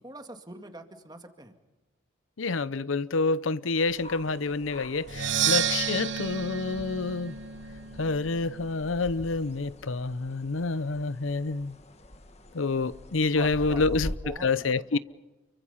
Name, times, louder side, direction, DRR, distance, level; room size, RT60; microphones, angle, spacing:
voice 1, 0.0-1.5 13.3-15.0, right 1 dB, 20° right, 2.2 m, -44 dB
voice 2, 2.4-7.4 8.0-11.7 12.5-14.1 14.4-15.0, left 3 dB, 85° left, 0.7 m, -28 dB
sound 1, 3.7-14.2, left 1 dB, 35° left, 1.6 m, -44 dB
Percussion, 5.1-8.9, right 8 dB, 70° right, 1.2 m, -31 dB
29.5 x 24.0 x 5.7 m
head